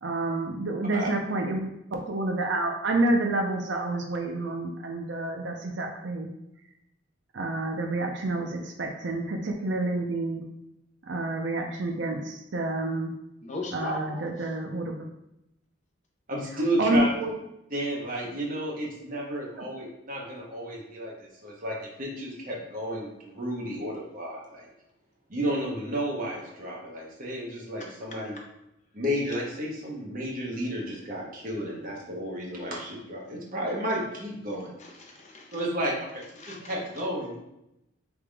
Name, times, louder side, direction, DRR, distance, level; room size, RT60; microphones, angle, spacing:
voice 1, 0.0-1.6 1.9-6.3 7.3-10.4 11.1-13.1 13.7-15.0 16.8-17.3 19.6-19.7, right 2 dB, 65° right, 3 dB, 0.5 m, -28 dB
voice 2, 13.4-14.5 34.8-35.7 36.4-36.7, left 2 dB, 35° left, 0 dB, 0.7 m, -39 dB
voice 3, 16.3-17.1 17.7-24.7 25.3-28.4 28.9-34.7 35.5-36.1 36.5-37.4, right 1 dB, 45° right, -3 dB, 1.0 m, -32 dB
3.7 x 3.5 x 3.4 m, 0.86 s
head